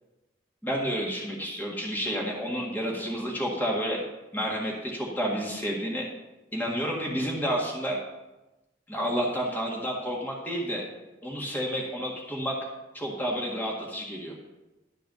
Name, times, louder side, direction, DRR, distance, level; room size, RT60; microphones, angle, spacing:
voice 1, 0.6-4.0 4.3-6.0 6.5-8.0 8.9-10.8 11.2-12.5 12.9-14.3, equal, 10° left, -2 dB, 1.7 m, -30 dB
12.0 x 4.6 x 6.7 m, 1.0 s
head